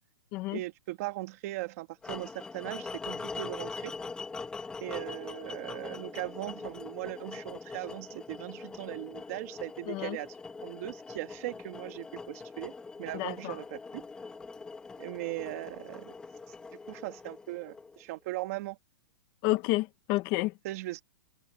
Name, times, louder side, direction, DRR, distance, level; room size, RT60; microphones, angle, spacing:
voice 1, 0.5-3.9 4.8-10.3 10.6-12.7 13.0-14.0 15.0-16.1 16.9-18.8 20.6-21.0, right 19 dB, 35° right, 1.8 m, -39 dB
sound 1, 2.0-18.1, left 4 dB, 5° left, 1.0 m, -42 dB
voice 2, 9.9-10.2 13.1-13.6 19.4-20.5, left 19 dB, 20° left, 0.7 m, -30 dB
hypercardioid pair, 175°, 15 cm